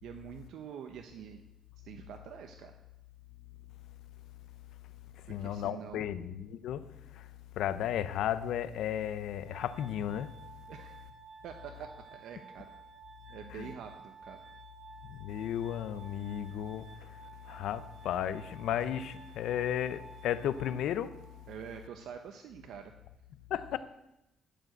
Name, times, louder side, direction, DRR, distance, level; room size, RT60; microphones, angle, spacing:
voice 1, 0.0-1.4 1.8-2.7 5.4-6.0 10.7-10.9 11.4-12.7 13.3-14.4 21.5-22.9, right 8 dB, 80° right, 0.9 m, -46 dB
voice 2, 5.1-10.3 13.5-13.7 15.0-21.2 23.5-23.8, left 10 dB, 80° left, 0.6 m, -34 dB
Glass, 9.4-21.4, right 5 dB, 50° right, 4.7 m, -53 dB
15.0 x 5.0 x 7.8 m
cardioid pair, 90°, 0 cm